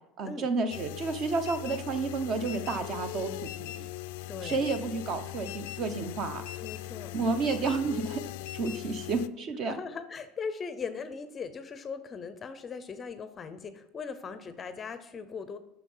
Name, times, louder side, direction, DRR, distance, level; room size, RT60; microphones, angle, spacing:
voice 1, 0.2-3.9 4.4-6.4 7.1-8.2 8.5-9.7, right 4 dB, 40° right, 9 dB, 0.9 m, -31 dB
sound 1, 0.7-9.3, left 16 dB, 85° left, 0.4 m, -40 dB
voice 2, 4.3-4.6 6.6-7.2 9.6-15.6, left 5 dB, 20° left, 11 dB, 0.6 m, -39 dB
9.8 x 6.0 x 5.5 m, 0.87 s
cardioid pair, 155°, 0 cm